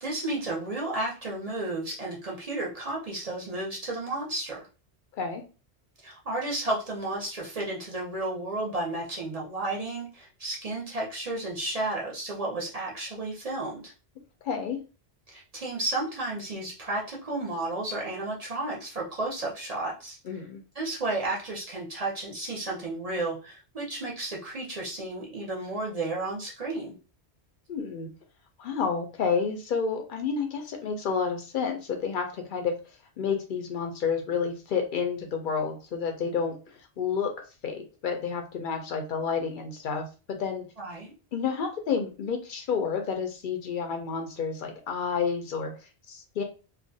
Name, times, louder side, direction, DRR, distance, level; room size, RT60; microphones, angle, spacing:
voice 1, 0.0-4.6 6.0-13.9 15.3-20.2 20.7-26.9 40.8-41.1, right 2 dB, 40° right, -3 dB, 0.6 m, -32 dB
voice 2, 14.4-14.8 20.2-20.6 27.7-28.1 28.6-32.8 33.2-40.6 41.3-45.7 46.1-46.4, left 6 dB, 60° left, 4 dB, 0.6 m, -30 dB
2.4 x 2.1 x 2.6 m, 0.33 s
omnidirectional pair, 1.2 m